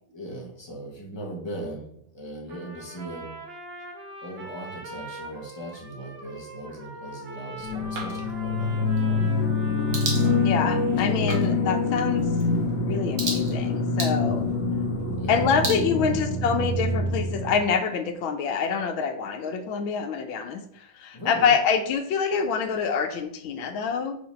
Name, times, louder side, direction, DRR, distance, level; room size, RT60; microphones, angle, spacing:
voice 1, 0.0-3.4 4.2-9.4 15.2-16.2 21.1-21.5, right 1 dB, 15° left, -2 dB, 1.4 m, -38 dB
Trumpet, 2.5-10.9, right 2 dB, 40° right, 1.0 m, -42 dB
sound 1, 7.6-17.6, left 3 dB, 65° left, 1.6 m, -25 dB
sound 2, 7.9-16.7, right 3 dB, 60° right, 1.9 m, -38 dB
voice 2, 10.4-12.3 12.8-14.4 15.3-24.2, left 6 dB, 90° left, 6 dB, 1.6 m, -26 dB
5.0 x 4.8 x 5.5 m, 0.68 s
omnidirectional pair, 2.1 m